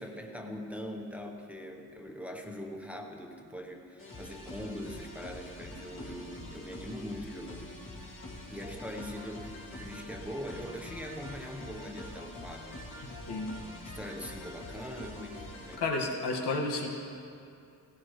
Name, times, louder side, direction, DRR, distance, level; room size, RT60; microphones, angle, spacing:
voice 1, 0.0-7.8 8.5-13.1 13.8-15.8, equal, 5° right, 1 dB, 1.0 m, -42 dB
sound 1, 4.0-15.8, left 1 dB, 55° left, 2.5 m, -45 dB
voice 2, 13.0-13.5 15.8-16.9, left 3 dB, 85° left, 0 dB, 1.8 m, -32 dB
18.0 x 17.5 x 3.2 m, 2.5 s
wide cardioid pair, 145°, 39 cm